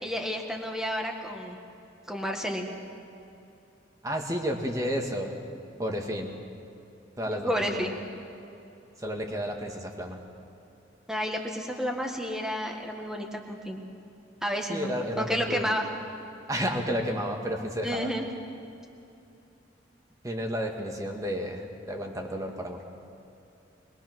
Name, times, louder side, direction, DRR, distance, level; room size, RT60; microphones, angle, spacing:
voice 1, 0.0-1.6 2.1-2.7 7.4-7.9 11.1-13.8 14.4-15.9 17.8-18.2, equal, 5° right, 2 dB, 1.8 m, -31 dB
voice 2, 4.0-5.4 5.8-6.4 7.2-7.9 9.0-10.2 14.7-15.8 16.5-18.1 20.2-22.8, equal, 20° right, 2 dB, 1.9 m, -31 dB
22.5 x 22.0 x 6.2 m, 2.7 s
head